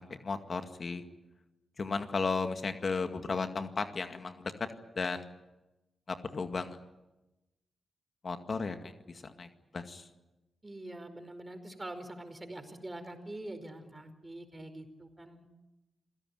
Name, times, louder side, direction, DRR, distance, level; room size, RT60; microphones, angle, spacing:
voice 1, 0.1-1.0 1.8-4.7 5.0-5.3 6.1-6.8 8.2-9.5 9.7-10.0, left 4 dB, 50° left, 7 dB, 2.0 m, -34 dB
voice 2, 10.6-15.5, right 1 dB, 25° right, 9 dB, 4.8 m, -44 dB
27.5 x 17.0 x 9.5 m, 1.0 s
supercardioid pair, 40°, 0 cm